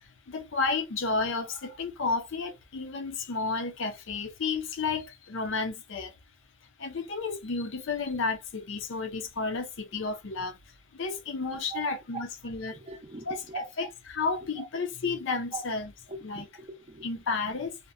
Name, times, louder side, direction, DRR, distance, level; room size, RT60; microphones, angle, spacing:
voice 1, 0.3-6.1 6.8-10.6 10.9-12.8 13.3-15.9 16.2-16.5 17.0-17.8, left 4 dB, 55° left, 0.5 m, -32 dB
voice 2, 11.5-11.9 12.1-13.7 14.6-14.7 15.5-15.7 16.1-17.1, right 4 dB, 30° right, 0.5 m, -42 dB
2.8 x 2.1 x 2.4 m
head